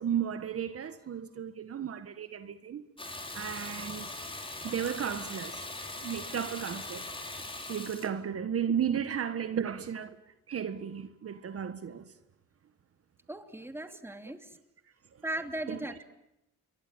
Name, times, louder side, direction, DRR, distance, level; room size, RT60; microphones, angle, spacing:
voice 1, 0.0-2.8 3.3-4.1 4.6-5.7 6.0-7.1 7.7-10.2 10.5-12.1 15.7-15.8, right 8 dB, 50° right, 1.6 m, -34 dB
Water tap faucet / Bathtub (filling or washing), 3.0-8.1, left 2 dB, 15° left, 5.3 m, -41 dB
voice 2, 13.3-14.4 15.2-16.0, right 1 dB, 10° right, 2.8 m, -37 dB
27.5 x 23.5 x 9.0 m
cardioid pair, 90°, 30 cm